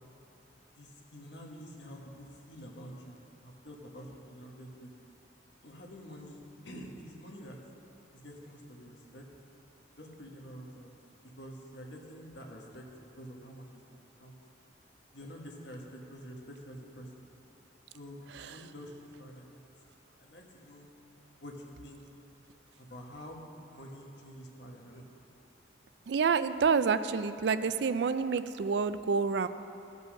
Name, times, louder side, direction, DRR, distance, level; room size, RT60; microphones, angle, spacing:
voice 1, 0.7-4.9 5.6-7.6 8.1-9.2 10.0-10.9 11.4-12.8 13.2-14.4 15.1-17.3 17.9-19.7 20.2-20.9 21.4-22.0 22.8-23.5 23.7-25.1, equal, 65° left, 0 dB, 1.4 m, -48 dB
voice 2, 26.1-29.5, right 5 dB, 65° right, 12 dB, 0.4 m, -28 dB
15.0 x 5.4 x 6.4 m, 2.9 s
head